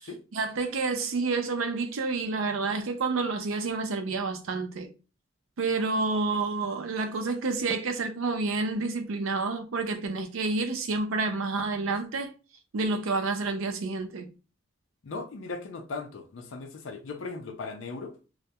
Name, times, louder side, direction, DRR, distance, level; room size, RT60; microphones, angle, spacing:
voice 1, 0.3-4.9 5.6-12.3 12.7-14.3, right 3 dB, 85° right, 0.5 m, -29 dB
voice 2, 15.0-18.2, left 3 dB, 70° left, 0.4 m, -38 dB
2.2 x 2.1 x 2.7 m
head